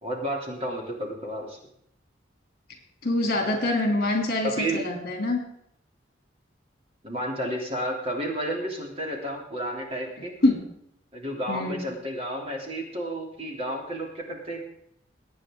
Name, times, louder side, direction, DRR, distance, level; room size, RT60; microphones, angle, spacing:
voice 1, 0.0-1.6 3.5-3.6 4.4-4.8 7.0-10.3 11.1-14.6, right 1 dB, 35° right, 0 dB, 3.2 m, -31 dB
voice 2, 3.0-5.4 10.4-10.6 11.5-11.8, left 2 dB, 55° left, 2 dB, 3.2 m, -25 dB
22.0 x 9.5 x 3.8 m, 0.71 s
head